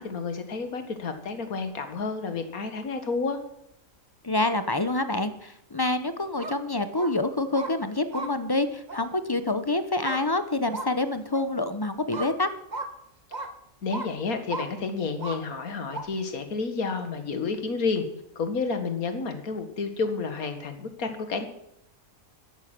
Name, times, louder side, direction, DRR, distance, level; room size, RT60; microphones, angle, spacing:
voice 1, 0.0-3.4 13.8-18.1 18.4-21.5, left 4 dB, 85° left, 8 dB, 2.0 m, -30 dB
voice 2, 4.2-12.5, left 2 dB, 20° left, 11 dB, 0.6 m, -27 dB
sound 1, 6.2-6.5 6.9-7.1 7.5-7.7 8.1-8.3 8.9-9.0 10.0-10.2 10.7-10.9 11.3-11.4 12.1-12.3 12.7-12.9 13.3-13.5 13.9-14.1 14.5-14.7 15.2-15.4 15.9-16.0, right 2 dB, 30° right, 1.4 m, -34 dB
13.5 x 11.0 x 6.0 m, 0.78 s
omnidirectional pair, 1.5 m